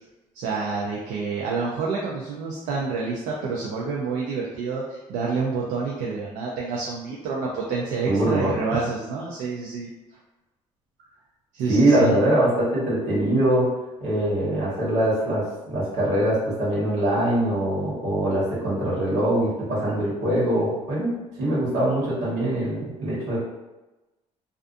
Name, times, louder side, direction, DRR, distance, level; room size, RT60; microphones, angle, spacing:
voice 1, 0.3-9.9 11.5-12.2, right 4 dB, 90° right, -3 dB, 0.4 m, -28 dB
voice 2, 8.0-8.6 11.7-13.7 14.0-21.1 21.4-23.4, right 1 dB, 70° right, -7 dB, 1.3 m, -23 dB
2.5 x 2.3 x 2.5 m, 1.1 s
cardioid pair, 180°, 13 cm